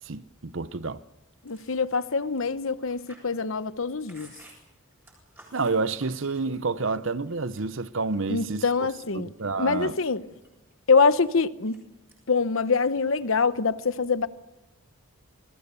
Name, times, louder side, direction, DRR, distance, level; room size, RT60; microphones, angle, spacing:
voice 1, 0.1-1.0 5.5-8.9 9.1-9.9, right 4 dB, 60° right, 0.8 m, -29 dB
voice 2, 1.4-4.3 8.3-9.3 9.6-10.2 10.9-11.7 12.3-14.3, left 4 dB, 65° left, 0.9 m, -24 dB
Chewing mastication, 1.4-6.9 7.3-8.3 8.8-9.4 9.8-11.8 12.1-12.4 12.7-13.5, right 1 dB, 10° right, 8.0 m, -55 dB
28.5 x 21.0 x 6.9 m
head